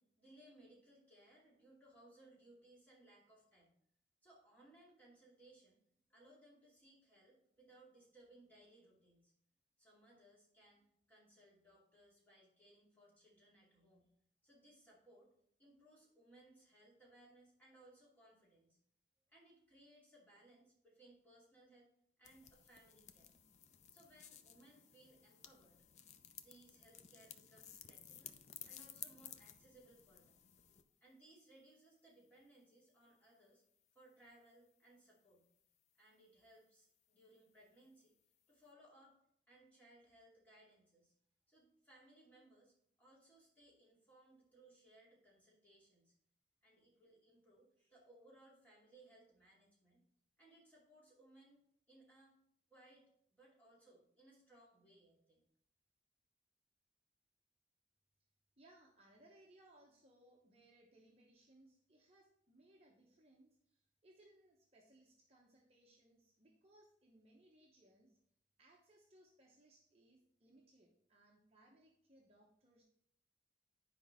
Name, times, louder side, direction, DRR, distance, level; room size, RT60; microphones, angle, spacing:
voice 1, 0.0-3.7 4.2-5.8 6.1-9.3 9.8-14.1 14.4-15.3 15.6-18.8 19.3-21.9 22.2-23.3 23.9-25.8 26.3-30.4 31.0-33.6 33.9-35.5 35.9-38.1 38.5-39.1 39.5-41.1 41.5-46.1 46.6-50.0 50.4-51.6 51.9-52.4 52.7-53.0 53.3-55.4, right 1 dB, 10° left, -6 dB, 2.7 m, -65 dB
sound 1, 22.2-30.8, left 9 dB, 40° left, 0.4 m, -56 dB
voice 2, 58.6-68.2 68.6-72.8, right 1 dB, 35° right, -1 dB, 0.9 m, -67 dB
9.8 x 5.0 x 3.6 m, 0.67 s
head